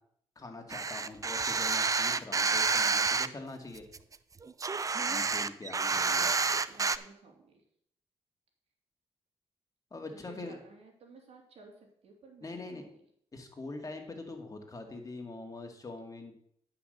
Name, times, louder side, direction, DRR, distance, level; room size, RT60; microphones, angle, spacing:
voice 1, 0.4-3.9 5.1-6.4 9.9-10.6 12.4-12.9 13.3-16.4, left 2 dB, 30° left, 3 dB, 2.4 m, -43 dB
sound 1, 0.7-3.3 3.8-7.0, right 4 dB, 30° right, 0.5 m, -29 dB
voice 2, 6.0-7.5 10.1-12.9, right 3 dB, 70° right, 2 dB, 3.0 m, -55 dB
9.9 x 5.9 x 6.8 m, 0.68 s
cardioid pair, 75°, 11 cm